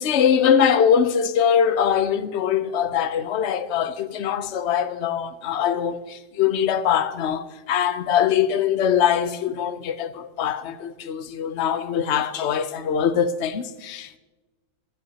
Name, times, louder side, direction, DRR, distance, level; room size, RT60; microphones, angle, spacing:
voice 1, 0.0-14.2, left 8 dB, 65° left, 0.7 m, -22 dB
24.5 x 12.0 x 2.9 m
omnidirectional pair, 2.0 m